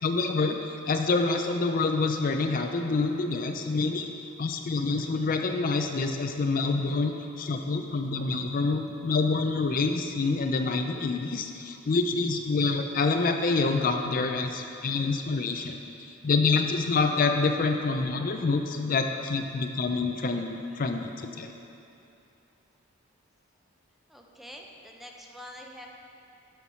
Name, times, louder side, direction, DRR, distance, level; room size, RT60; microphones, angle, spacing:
voice 1, 0.0-4.1 4.4-15.8 16.1-21.5, left 3 dB, 45° left, 5 dB, 0.4 m, -27 dB
voice 2, 24.1-25.9, left 1 dB, ahead, 0 dB, 0.7 m, -45 dB
12.5 x 4.6 x 5.5 m, 2.8 s
head